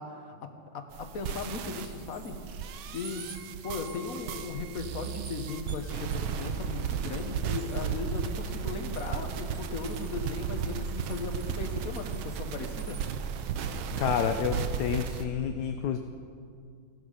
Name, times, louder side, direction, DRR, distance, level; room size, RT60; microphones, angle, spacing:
voice 1, 0.0-2.6 2.9-3.2 3.6-13.0, left 4 dB, 50° left, 5 dB, 1.4 m, -37 dB
sound 1, 0.9-15.2, right 7 dB, 90° right, 1.6 m, -34 dB
sound 2, 1.6-14.0, right 2 dB, 60° right, 3.4 m, -55 dB
voice 2, 14.0-16.0, left 8 dB, 65° left, 6 dB, 1.1 m, -29 dB
16.0 x 12.0 x 5.0 m, 2.2 s
omnidirectional pair, 2.2 m